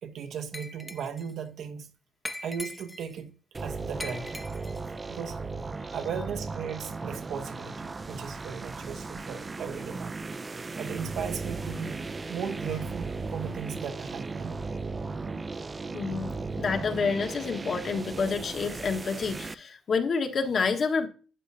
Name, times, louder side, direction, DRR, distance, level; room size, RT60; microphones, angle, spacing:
voice 1, 0.0-1.9 2.4-4.4 5.1-5.4 5.9-10.2 10.8-12.0 12.3-14.7, right 7 dB, 70° right, 1.2 m, -37 dB
Glass, 0.5-1.3 2.2-3.2 4.0-4.9, left 2 dB, 15° left, 0.8 m, -40 dB
sound 1, 3.5-19.5, right 3 dB, 30° right, 0.5 m, -36 dB
voice 2, 15.9-21.1, left 5 dB, 50° left, 1.4 m, -28 dB
11.5 x 8.2 x 2.7 m
cardioid pair, 90°, 0 cm